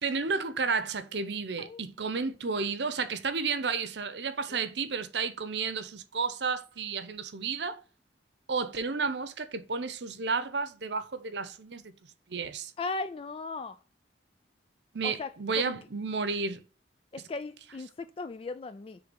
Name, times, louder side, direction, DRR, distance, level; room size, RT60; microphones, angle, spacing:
voice 1, 0.0-7.8 8.5-11.9 12.3-12.7 14.9-16.6, right 4 dB, 70° right, 0.8 m, -32 dB
voice 2, 12.8-13.8 15.0-15.7 17.1-19.0, left 3 dB, 30° left, 0.3 m, -37 dB
6.5 x 3.4 x 5.2 m
head